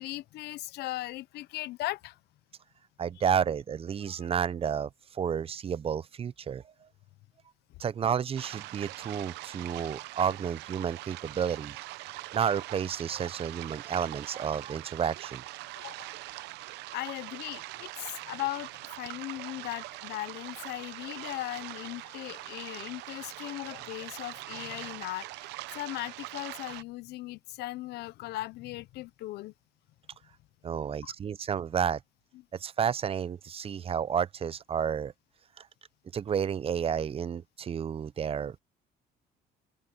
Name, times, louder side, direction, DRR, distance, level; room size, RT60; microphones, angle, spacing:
voice 1, 0.0-2.2 4.1-4.3 15.8-16.1 16.9-18.7 19.0-29.5 31.0-31.1, left 17 dB, 75° left, 0.6 m, -38 dB
voice 2, 3.0-6.6 7.8-11.8 12.1-15.4 30.6-32.0 32.5-35.1 35.6-35.7 36.1-38.6, right 8 dB, 35° right, 0.6 m, -31 dB
sound 1, 8.3-26.8, right 19 dB, 90° right, 0.7 m, -43 dB
open air
cardioid pair, 110°, 17 cm